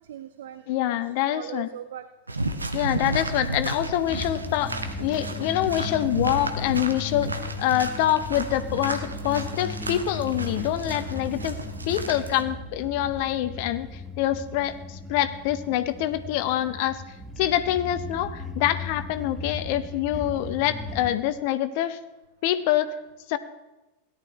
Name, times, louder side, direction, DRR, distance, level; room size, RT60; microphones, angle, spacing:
voice 1, 0.0-1.0 1.2-2.4, right 11 dB, 60° right, 12 dB, 0.5 m, -40 dB
voice 2, 0.7-1.7 2.7-11.6 11.9-17.0 17.4-22.0 22.4-22.9 23.3-23.4, left 12 dB, 45° left, 13 dB, 0.8 m, -26 dB
sound 1, 2.3-12.4, right 2 dB, 80° right, 1.0 m, -33 dB
sound 2, 4.0-21.1, left 3 dB, ahead, 1.4 m, -37 dB
17.0 x 11.5 x 3.2 m, 1.1 s
figure-of-eight pair, 90°, 0 cm